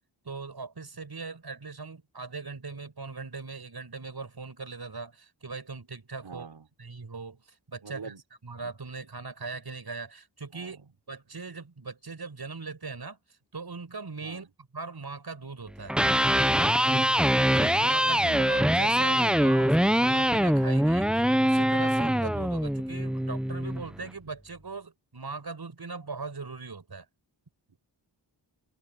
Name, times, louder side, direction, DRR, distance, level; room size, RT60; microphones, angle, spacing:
voice 1, 0.2-6.5 6.8-7.4 7.7-8.1 8.4-10.8 11.1-13.2 13.5-14.5 14.7-15.9 17.6-27.1, right 4 dB, 60° right, 6.4 m, -39 dB
voice 2, 6.2-6.7 7.8-8.2 8.6-8.7 10.5-10.9 14.2-14.5 16.9-17.4 27.7-27.8, right 5 dB, 85° right, 4.5 m, -44 dB
Electric guitar, 15.8-23.9, equal, ahead, 0.8 m, -23 dB
cardioid pair, 50°, 42 cm